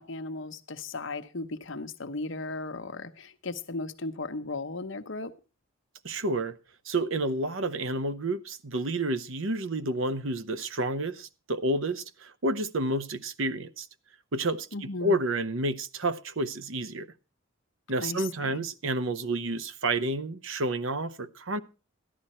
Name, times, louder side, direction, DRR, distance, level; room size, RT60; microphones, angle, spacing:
voice 1, 0.0-5.3 14.7-15.2 18.0-18.6, left 3 dB, 60° left, 1.0 m, -36 dB
voice 2, 6.0-6.6 6.9-13.9 14.3-17.1 17.9-21.6, right 2 dB, 65° right, 0.8 m, -30 dB
13.5 x 11.0 x 4.3 m
head